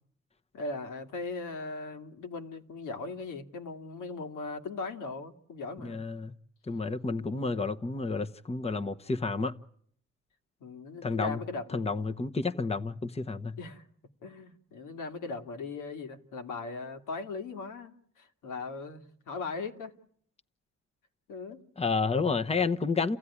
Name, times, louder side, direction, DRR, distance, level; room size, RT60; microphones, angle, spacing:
voice 1, 0.5-6.0 7.2-7.6 10.6-12.0 13.6-13.8 14.2-20.0 21.3-21.6, left 3 dB, 80° left, 2.6 m, -39 dB
voice 2, 5.8-6.3 6.7-9.5 11.0-11.4 11.7-13.6 21.8-23.2, left 4 dB, 20° left, 1.1 m, -30 dB
30.0 x 15.5 x 9.9 m
cardioid pair, 90°, 30 cm